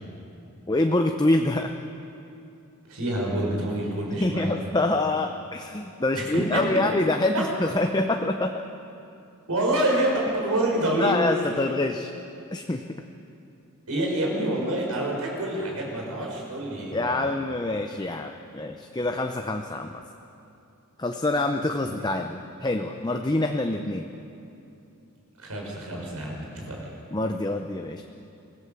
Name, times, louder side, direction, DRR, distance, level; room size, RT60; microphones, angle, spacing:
voice 1, 0.7-1.7 4.2-8.6 11.0-12.1 12.5-12.8 16.9-20.0 21.0-22.3 22.6-24.1 27.1-28.0, left 2 dB, 20° left, 5 dB, 0.6 m, -26 dB
voice 2, 2.9-4.6 6.1-6.8 9.5-11.1 13.9-17.3 21.8-21.9 25.4-26.9, right 1 dB, 85° right, -2 dB, 5.8 m, -27 dB
24.0 x 16.0 x 7.1 m, 2.7 s
head